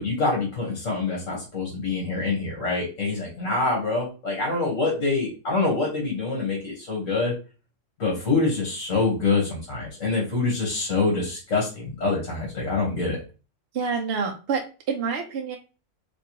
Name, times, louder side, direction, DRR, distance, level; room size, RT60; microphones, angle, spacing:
voice 1, 0.0-7.3 8.0-13.2, left 3 dB, 80° left, -3 dB, 1.7 m, -25 dB
voice 2, 13.7-15.6, right 5 dB, 60° right, 2 dB, 0.7 m, -27 dB
3.4 x 3.0 x 2.9 m, 0.34 s
omnidirectional pair, 1.3 m